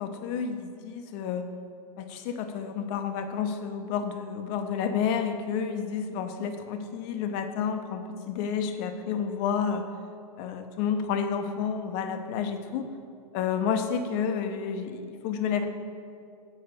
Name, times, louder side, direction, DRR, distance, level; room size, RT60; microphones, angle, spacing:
voice 1, 0.0-1.5 2.0-9.9 10.4-12.9 13.3-15.6, left 7 dB, 45° left, 7 dB, 0.7 m, -30 dB
6.9 x 4.6 x 6.6 m, 2.3 s
hypercardioid pair, 120°, 19 cm